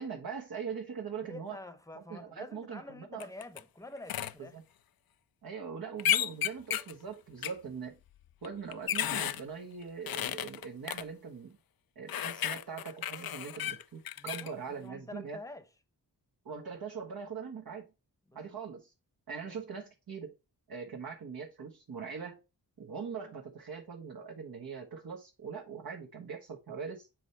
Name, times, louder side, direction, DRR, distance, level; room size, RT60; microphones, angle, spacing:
voice 1, 0.0-1.6 1.9-3.3 4.4-4.6 5.4-8.0 8.4-11.6 11.9-15.4 16.4-17.9 18.3-18.9 19.3-20.3 20.7-22.4 22.8-27.1, right 6 dB, 60° right, 1.3 m, -42 dB
voice 2, 1.2-4.6 14.2-15.7 18.3-18.4 19.5-19.6, left 2 dB, 10° left, 0.9 m, -47 dB
sound 1, 3.2-3.6 4.1-4.3 6.0-6.9 7.4-7.5 8.4-9.4 10.1-11.0 12.1-14.5, left 11 dB, 60° left, 0.5 m, -32 dB
7.6 x 3.3 x 4.1 m
cardioid pair, 60°, 40 cm